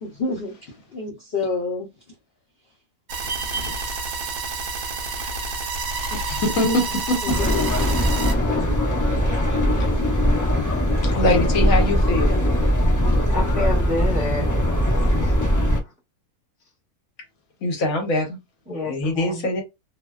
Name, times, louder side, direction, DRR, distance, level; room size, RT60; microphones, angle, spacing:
voice 1, 0.0-1.9 3.2-3.9 6.6-6.7 7.4-7.5, left 2 dB, 55° left, 0.7 m, -28 dB
sound 1, 3.1-8.3, right 3 dB, 75° right, 1.0 m, -29 dB
voice 2, 6.2-7.4 9.8-9.9 11.0-12.4 17.6-18.4 18.9-19.6, left 2 dB, 70° left, 1.2 m, -23 dB
sound 2, 7.3-15.8, equal, 30° left, 0.3 m, -20 dB
voice 3, 13.3-14.5 15.2-15.3 18.7-19.4, left 2 dB, 5° right, 0.7 m, -28 dB
2.6 x 2.1 x 2.3 m
omnidirectional pair, 1.5 m